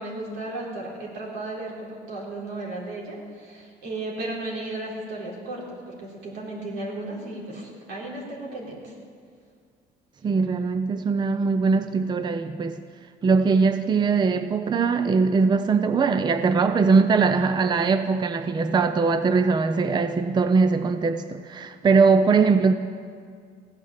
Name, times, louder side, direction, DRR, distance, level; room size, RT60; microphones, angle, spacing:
voice 1, 0.0-8.9, right 2 dB, 85° right, -3 dB, 3.8 m, -34 dB
voice 2, 10.2-12.8 13.2-22.7, right 4 dB, 25° right, 9 dB, 0.5 m, -21 dB
16.0 x 9.7 x 7.4 m, 2.1 s
cardioid pair, 110°, 17 cm